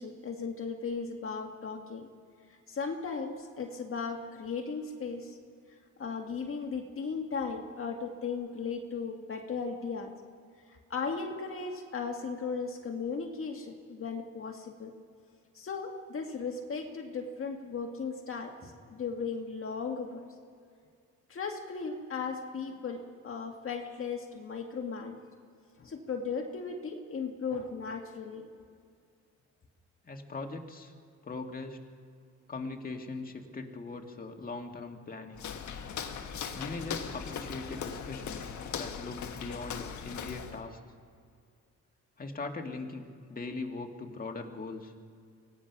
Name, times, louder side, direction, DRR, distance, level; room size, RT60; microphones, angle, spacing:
voice 1, 0.0-2.1 2.5-5.4 6.0-10.1 10.7-14.9 15.5-20.3 21.3-25.2 25.8-28.5, left 5 dB, 45° left, 3 dB, 1.9 m, -36 dB
voice 2, 30.0-30.9 31.2-31.8 32.5-35.4 36.5-40.8 42.2-44.9, left 3 dB, 30° left, 3 dB, 2.1 m, -40 dB
Walk footsteps, 35.3-40.6, left 7 dB, 70° left, 1.7 m, -39 dB
25.0 x 17.5 x 6.0 m, 2.3 s
cardioid pair, 90°, 30 cm